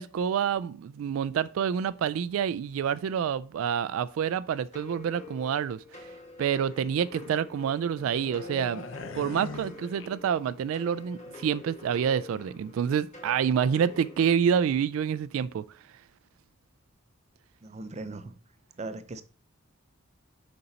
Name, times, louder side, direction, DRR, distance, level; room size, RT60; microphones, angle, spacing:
voice 1, 0.0-6.1 6.4-8.9 9.1-15.6, right 8 dB, 80° right, 0.3 m, -28 dB
sound 1, 4.7-14.3, left 3 dB, 35° left, 1.5 m, -47 dB
sound 2, 8.0-10.7 10.9-11.2, left 3 dB, 65° left, 0.7 m, -41 dB
voice 2, 17.6-18.3 18.8-19.2, right 2 dB, 35° right, 0.6 m, -38 dB
6.9 x 5.3 x 4.0 m
head